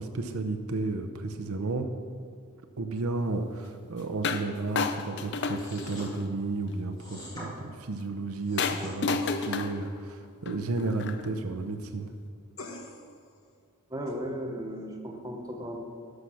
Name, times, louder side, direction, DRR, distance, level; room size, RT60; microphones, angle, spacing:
voice 1, 0.0-1.9 2.8-12.1, right 3 dB, 75° right, 7 dB, 0.7 m, -33 dB
sound 1, 4.2-4.5 4.8-6.3 8.6-11.3, left 5 dB, 50° left, 0.5 m, -31 dB
sound 2, 5.5-6.1 7.0-7.5 8.3-8.9, left 1 dB, 20° left, 2.0 m, -44 dB
sound 3, 9.2-9.9 12.6-13.2 14.1-14.2, left 1 dB, 70° left, 1.1 m, -40 dB
voice 2, 13.9-15.8, equal, 15° right, 1 dB, 0.9 m, -36 dB
11.5 x 5.8 x 6.3 m, 2.2 s
head